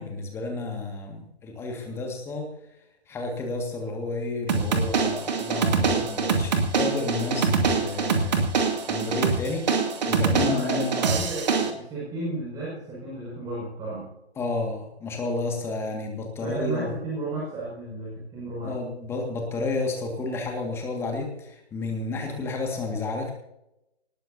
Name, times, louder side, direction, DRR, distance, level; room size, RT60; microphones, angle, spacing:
voice 1, 0.0-2.6 3.1-8.4 8.9-9.7 10.0-11.0 14.4-16.9 18.6-23.3, left 3 dB, 10° left, 2 dB, 1.9 m, -31 dB
sound 1, 4.5-11.7, right 5 dB, 40° right, 2.5 m, -24 dB
voice 2, 10.3-14.1 16.4-18.8 22.3-22.5, right 2 dB, 10° right, -6 dB, 6.1 m, -33 dB
19.5 x 18.0 x 2.8 m, 0.86 s
figure-of-eight pair, 140°, 32 cm